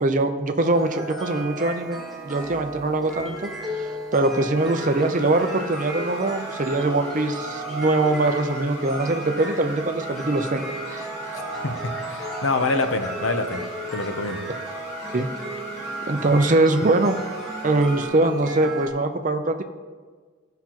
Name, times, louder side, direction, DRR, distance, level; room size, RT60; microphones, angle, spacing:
voice 1, 0.0-3.5 3.7-3.9 4.1-11.1 15.1-15.3 16.1-17.2 17.6-19.6, right 2 dB, 40° right, 7 dB, 0.6 m, -22 dB
sound 1, 0.6-18.9, right 1 dB, ahead, 1.4 m, -35 dB
sound 2, 4.5-18.1, right 1 dB, 35° left, 2.2 m, -39 dB
voice 2, 11.6-13.6 13.9-14.4, left 3 dB, 65° left, 7 dB, 0.7 m, -26 dB
14.5 x 5.8 x 2.9 m, 1.5 s
head